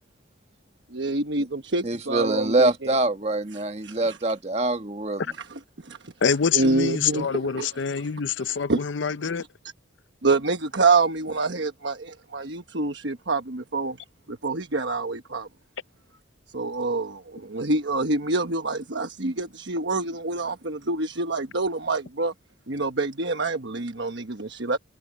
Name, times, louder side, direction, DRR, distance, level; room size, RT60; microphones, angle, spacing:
voice 1, 0.9-2.9 3.8-4.2 5.8-6.0 6.5-7.7 8.7-8.8 10.2-14.0 14.3-15.5 16.5-22.3 22.7-24.8, right 3 dB, 60° right, 1.2 m, -26 dB
voice 2, 1.8-5.2, right 2 dB, 30° right, 1.4 m, -24 dB
voice 3, 6.2-9.4, left 6 dB, 65° left, 0.6 m, -26 dB
head